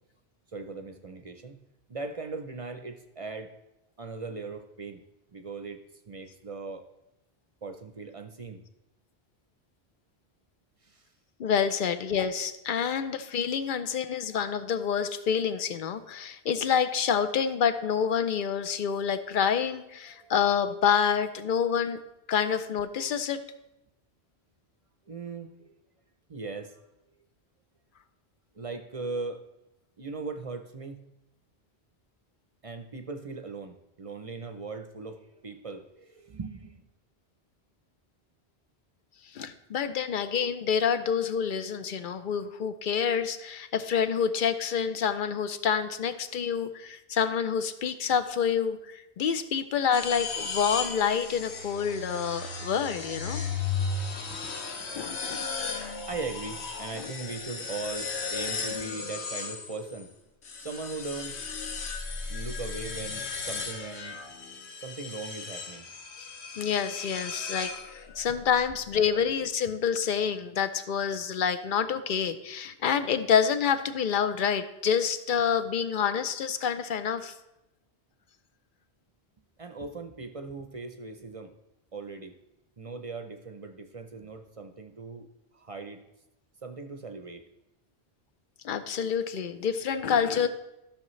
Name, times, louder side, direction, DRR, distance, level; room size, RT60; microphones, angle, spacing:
voice 1, 0.5-1.6 1.9-3.5 4.0-5.0 5.3-6.8 7.6-8.6 10.8-11.1 20.1-20.3 25.1-25.7 26.3-26.8 28.5-29.5 30.0-31.0 32.6-36.9 54.1-55.6 56.0-60.1 60.6-61.4 62.3-64.2 64.8-65.9 67.4-67.5 69.2-69.3 79.6-81.5 81.9-82.4 82.8-85.3 85.5-86.0 86.6-87.4, right 3 dB, 40° right, 7 dB, 0.6 m, -39 dB
voice 2, 11.4-22.0 22.3-23.4 39.3-53.4 54.9-55.4 56.9-57.1 66.2-66.3 66.6-77.3 88.6-90.5, left 7 dB, 55° left, 10 dB, 0.7 m, -27 dB
sound 1, 49.9-60.0 60.4-68.3, left 4 dB, 80° left, 1.2 m, -35 dB
13.5 x 6.5 x 3.1 m, 0.91 s
omnidirectional pair, 1.1 m